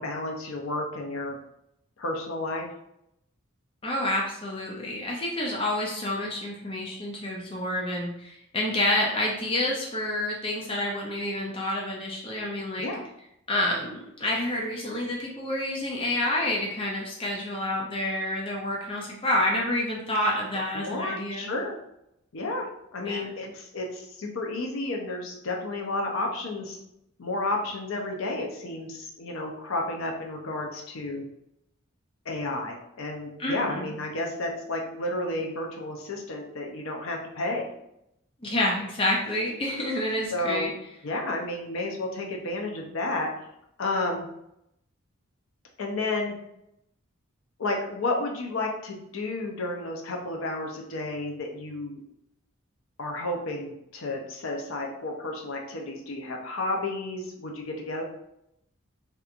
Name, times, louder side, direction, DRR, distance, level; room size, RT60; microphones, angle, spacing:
voice 1, 0.0-1.4 2.0-2.7 12.8-13.0 20.7-21.7 22.3-22.7 22.9-26.8 27.2-31.2 32.3-37.7 40.3-40.7 41.0-43.3 43.8-44.3 45.8-46.3 47.6-52.0 53.0-58.0, left 2 dB, 70° left, 1 dB, 0.6 m, -31 dB
voice 2, 3.8-12.9 13.5-21.5 23.0-23.4 33.4-33.9 38.4-40.7, left 1 dB, 25° left, -2 dB, 0.5 m, -28 dB
3.4 x 2.9 x 2.5 m, 0.80 s
head